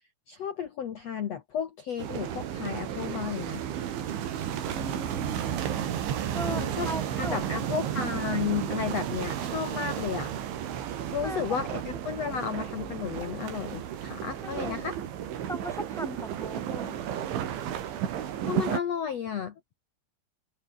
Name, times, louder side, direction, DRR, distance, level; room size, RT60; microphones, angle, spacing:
voice 1, 0.3-3.6 6.5-6.9 7.2-10.3 11.1-15.0 18.5-19.5, left 7 dB, 85° left, 1.4 m, -33 dB
sound 1, 2.0-18.8, right 10 dB, 85° right, 5.1 m, -33 dB
voice 2, 4.7-5.9 6.3-7.4 7.7-8.2 11.2-11.5 12.2-12.3 14.4-14.8 15.5-17.0, right 1 dB, ahead, 5.6 m, -39 dB
omnidirectional pair, 5.2 m